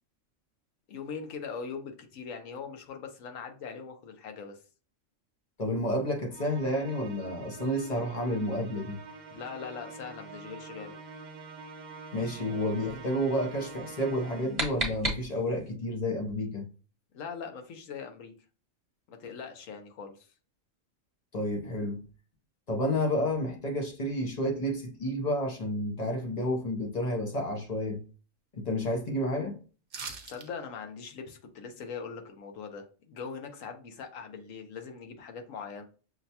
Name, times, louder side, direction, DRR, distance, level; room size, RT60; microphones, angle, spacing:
voice 1, 0.9-4.6 9.3-11.0 17.1-18.3 19.1-20.3 30.3-35.8, left 6 dB, 80° left, 1.1 m, -41 dB
voice 2, 5.6-9.0 12.1-16.7 21.3-22.0 22.7-28.0 28.5-29.6, left 1 dB, 40° left, 0.7 m, -30 dB
Musical instrument, 6.3-14.8, right 4 dB, 80° right, 0.4 m, -46 dB
sound 1, 14.1-15.7, right 2 dB, 30° right, 1.1 m, -34 dB
sound 2, 29.9-30.5 30.8-30.9, right 5 dB, 50° right, 0.8 m, -40 dB
6.1 x 2.2 x 2.8 m
omnidirectional pair, 1.3 m